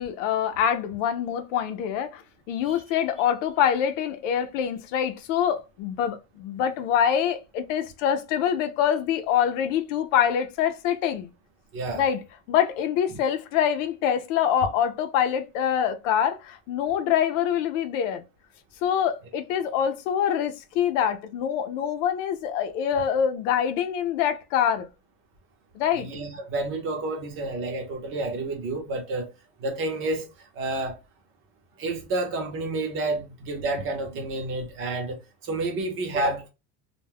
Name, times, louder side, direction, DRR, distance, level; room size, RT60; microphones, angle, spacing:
voice 1, 0.0-2.2 2.5-11.3 11.9-12.2 12.5-18.2 18.8-24.9 25.7-26.1, left 9 dB, 80° left, 0.7 m, -25 dB
voice 2, 11.7-12.0 25.9-29.3 29.6-30.3 30.5-31.0 31.8-36.5, right 2 dB, 35° right, 0.8 m, -30 dB
2.3 x 2.2 x 3.4 m
cardioid pair, 155°, 37 cm